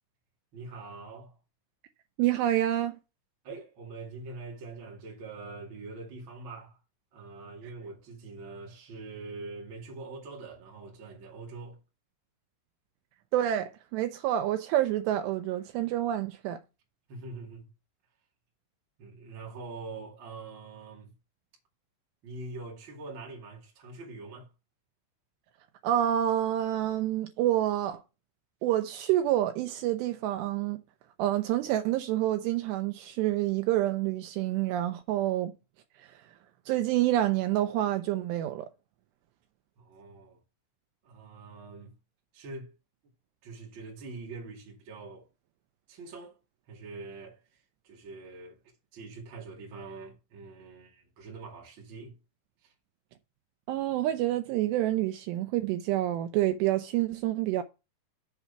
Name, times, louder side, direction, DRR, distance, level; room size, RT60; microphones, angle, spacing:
voice 1, 0.5-1.3 3.4-6.8 7.1-11.8 17.1-17.7 19.0-21.1 22.2-24.5 39.8-40.4 41.0-41.9 42.3-42.7 43.4-45.3 45.9-46.4 46.7-48.6 48.9-52.2 52.6-52.7, right 3 dB, 35° right, 2.2 m, -44 dB
voice 2, 2.2-3.0 13.3-16.6 25.8-28.0 28.6-30.8 31.2-35.5 36.7-38.7 53.7-57.6, right 13 dB, 85° right, 2.4 m, -28 dB
7.2 x 4.5 x 6.8 m
omnidirectional pair, 5.5 m